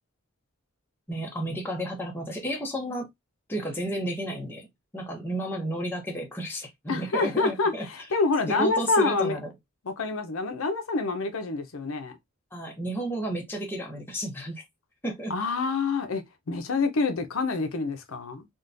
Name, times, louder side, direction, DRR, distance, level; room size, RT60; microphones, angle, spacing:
voice 1, 1.1-3.1 3.5-4.7 4.9-7.9 8.5-9.5 12.5-14.6 15.0-15.3, right 1 dB, 10° left, 0.7 m, -32 dB
voice 2, 6.9-9.4 9.8-12.2 15.3-18.5, left 3 dB, 70° left, 0.6 m, -27 dB
3.7 x 2.2 x 2.5 m
head